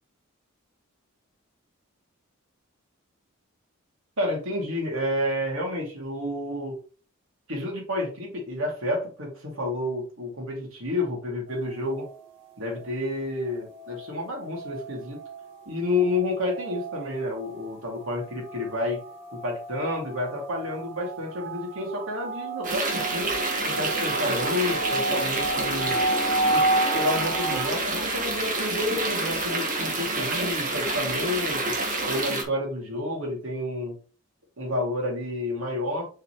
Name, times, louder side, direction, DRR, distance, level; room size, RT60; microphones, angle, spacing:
voice 1, 4.2-6.8 7.5-12.1 12.6-15.2 15.7-19.0 19.3-23.4 23.6-26.0 26.5-26.6 26.9-31.8 32.1-34.0 34.6-36.1, left 1 dB, 75° right, -1 dB, 2.9 m, -30 dB
sound 1, 11.5-27.7, right 2 dB, 60° right, 2.3 m, -32 dB
sound 2, 22.6-32.4, right 2 dB, 40° right, 1.6 m, -28 dB
6.9 x 4.9 x 3.2 m, 0.37 s
head